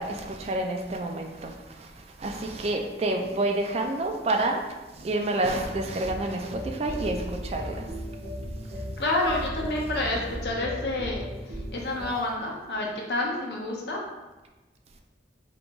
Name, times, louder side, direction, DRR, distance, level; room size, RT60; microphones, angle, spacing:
voice 1, 0.0-1.5 2.2-4.6 5.0-7.2 7.4-7.8, right 2 dB, 35° right, 4 dB, 0.3 m, -28 dB
sound 1, 5.7-12.1, equal, 75° right, 1.0 m, -36 dB
voice 2, 9.0-14.1, left 2 dB, 60° left, -1 dB, 0.8 m, -29 dB
3.7 x 2.9 x 3.6 m, 1.1 s
head